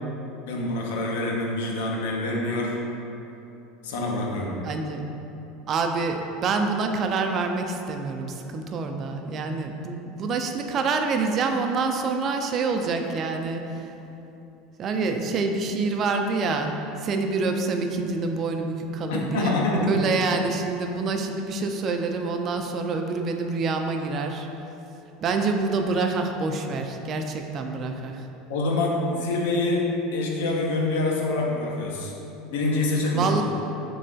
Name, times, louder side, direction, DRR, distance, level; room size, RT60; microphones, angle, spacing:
voice 1, 0.5-2.8 3.8-4.6 19.1-20.1 28.5-29.8 30.1-32.1 32.5-33.4, left 2 dB, 75° left, -1 dB, 0.5 m, -26 dB
voice 2, 4.6-5.0 5.7-13.6 14.8-16.8 17.0-19.6 19.9-24.5 25.2-28.3 33.1-33.4, right 4 dB, 45° right, 4 dB, 0.3 m, -26 dB
3.6 x 3.1 x 2.6 m, 2.9 s
hypercardioid pair, 85°, 0 cm